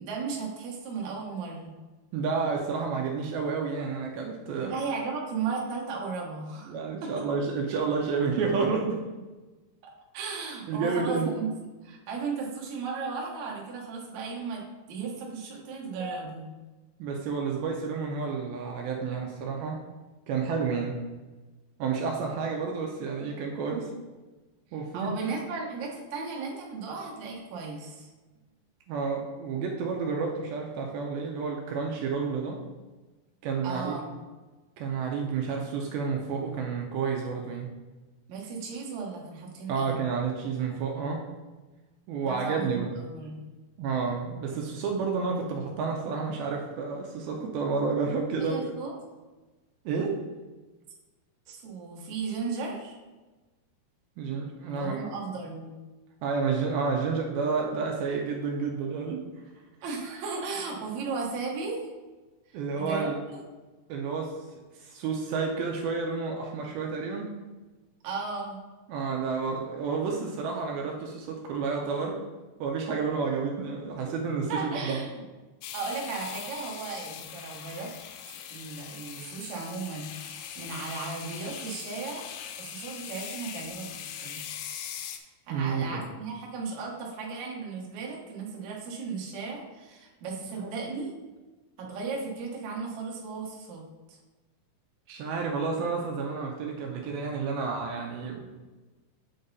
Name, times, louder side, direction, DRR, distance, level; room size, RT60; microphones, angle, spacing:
voice 1, 0.0-1.7 4.5-6.7 7.0-7.1 9.8-11.5 11.8-14.6 14.9-16.5 24.9-28.1 33.6-34.1 38.3-40.0 42.2-43.4 48.4-48.9 51.5-53.0 54.7-55.7 59.8-61.8 62.5-63.4 68.0-68.6 74.5-75.2 75.7-77.9 78.3-82.3 82.6-84.5 85.5-91.1 91.8-93.8 94.1-94.2, right 4 dB, 60° right, -2 dB, 2.1 m, -35 dB
voice 2, 2.1-4.8 6.7-9.0 10.7-11.3 16.0-16.1 17.0-19.8 20.3-21.0 21.8-23.9 24.7-25.1 28.9-32.6 33.4-33.9 34.8-37.7 39.7-41.2 42.1-42.9 43.8-48.7 49.9-50.2 54.2-55.0 56.2-59.2 62.5-63.2 63.9-64.3 64.8-67.3 68.9-72.2 72.6-75.0 85.5-86.0 90.5-90.9 95.1-98.5, right 5 dB, 80° right, 1 dB, 2.5 m, -30 dB
sound 1, 75.6-85.2, left 9 dB, 85° left, 2.6 m, -41 dB
7.7 x 3.8 x 4.0 m, 1.2 s
omnidirectional pair, 4.5 m